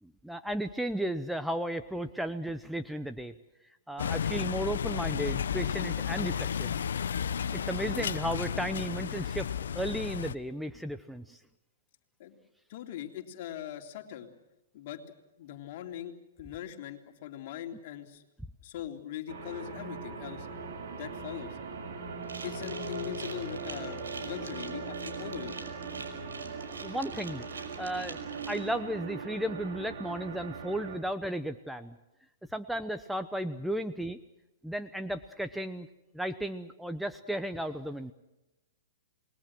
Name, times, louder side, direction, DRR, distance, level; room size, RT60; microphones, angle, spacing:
voice 1, 0.0-3.3 3.9-6.7 7.5-11.4 26.6-32.0 32.5-34.2 34.6-35.9 36.1-38.1, right 1 dB, ahead, 10 dB, 0.9 m, -34 dB
sound 1, 4.0-10.3, left 8 dB, 70° left, 1.1 m, -33 dB
voice 2, 12.7-14.3 14.7-15.0 15.4-18.2 18.6-20.5 20.9-21.6 22.4-25.5, left 11 dB, 50° left, 4 dB, 3.3 m, -41 dB
sound 2, 19.3-31.0, right 4 dB, 60° right, 5.4 m, -40 dB
sound 3, 22.2-28.6, right 4 dB, 80° right, 5.5 m, -45 dB
28.5 x 21.0 x 6.2 m, 0.96 s
hypercardioid pair, 120°, 0 cm